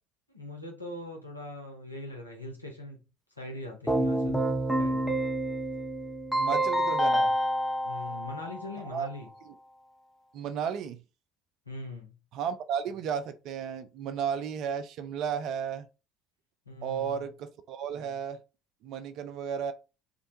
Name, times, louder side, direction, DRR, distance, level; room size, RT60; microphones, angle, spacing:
voice 1, 0.3-3.0 3.4-4.5 4.8-5.2 7.8-9.3 11.7-12.1 16.7-17.3, left 2 dB, 90° left, 0.5 m, -41 dB
Keyboard (musical), 3.9-8.8, right 1 dB, ahead, 0.6 m, -28 dB
voice 2, 6.3-7.3 8.9-9.1 10.3-11.0 12.3-15.9 16.8-18.4 18.8-19.7, right 7 dB, 50° right, 0.3 m, -33 dB
2.5 x 2.1 x 2.6 m
figure-of-eight pair, 60°, 0 cm